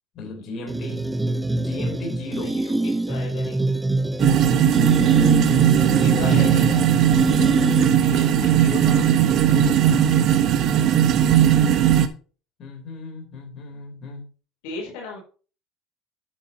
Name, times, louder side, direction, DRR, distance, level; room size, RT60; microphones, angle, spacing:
voice 1, 0.1-1.1 1.6-2.6 5.4-5.7 6.1-6.6 7.8-10.2 12.6-14.3, left 3 dB, 45° left, 4.2 m, -36 dB
sound 1, 0.7-8.2, right 2 dB, 10° right, 0.8 m, -25 dB
voice 2, 2.4-3.6 5.7-6.8 14.6-15.2, left 3 dB, 80° left, 4.3 m, -36 dB
sound 2, 4.2-12.1, right 10 dB, 55° right, 1.3 m, -18 dB
11.0 x 8.9 x 3.1 m
supercardioid pair, 105°, 0 cm